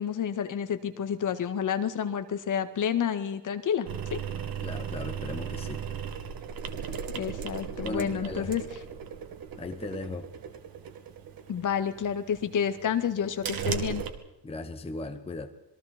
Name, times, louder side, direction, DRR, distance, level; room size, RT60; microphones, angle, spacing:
voice 1, 0.0-4.2 7.1-8.6 11.5-14.0, left 8 dB, 45° left, 9 dB, 1.9 m, -29 dB
sound 1, 3.9-14.1, right 7 dB, 50° right, 2.4 m, -37 dB
voice 2, 4.6-5.9 7.8-8.6 9.6-10.3 14.4-15.5, left 2 dB, 15° left, 6 dB, 1.1 m, -37 dB
27.0 x 22.5 x 4.4 m, 0.98 s
cardioid pair, 155°, 44 cm